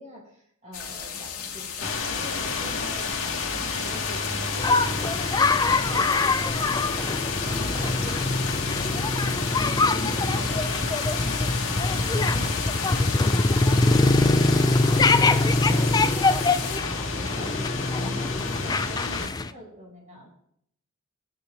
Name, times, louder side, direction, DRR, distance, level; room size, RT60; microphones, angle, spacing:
voice 1, 0.0-6.1 6.5-12.6 12.9-20.3, equal, 35° right, -2 dB, 5.0 m, -44 dB
sound 1, 0.7-16.8, left 7 dB, 90° left, 2.2 m, -36 dB
sound 2, 1.8-19.3, left 4 dB, 65° left, 2.0 m, -31 dB
sound 3, 4.6-19.5, left 3 dB, 20° left, 0.4 m, -23 dB
22.0 x 8.7 x 3.3 m, 0.71 s
head